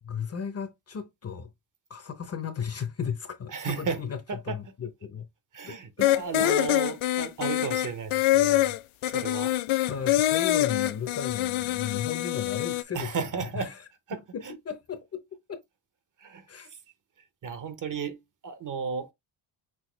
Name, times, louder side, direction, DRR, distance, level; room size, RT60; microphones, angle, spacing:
voice 1, 0.0-1.5 1.9-5.3 5.6-6.6 9.9-13.7 14.3-15.2 16.5-16.7, left 7 dB, 30° left, 0.7 m, -35 dB
voice 2, 3.5-4.0 4.3-4.6 5.5-8.8 9.1-9.5 12.9-13.7 14.1-14.2 14.4-14.5 16.2-16.4 17.4-19.1, right 5 dB, 40° right, 0.9 m, -34 dB
sound 1, 6.0-12.8, left 15 dB, 90° left, 0.6 m, -25 dB
6.1 x 2.6 x 3.1 m
cardioid pair, 150°, 47 cm